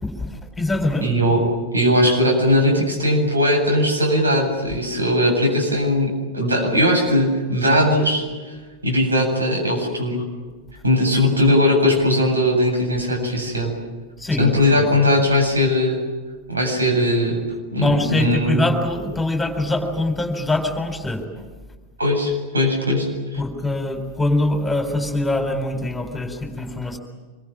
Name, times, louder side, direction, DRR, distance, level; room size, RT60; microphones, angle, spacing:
voice 1, 0.0-1.3 14.2-15.0 17.8-21.5 23.4-27.0, left 2 dB, 5° left, 5 dB, 4.0 m, -23 dB
voice 2, 1.0-1.4 1.7-8.3 8.8-10.2 10.8-13.7 14.4-16.0 16.5-17.4 17.7-18.6 22.0-23.1 23.3-23.4, left 1 dB, 80° right, 2 dB, 7.9 m, -19 dB
26.0 x 23.5 x 8.9 m, 1.4 s
figure-of-eight pair, 90°, 0 cm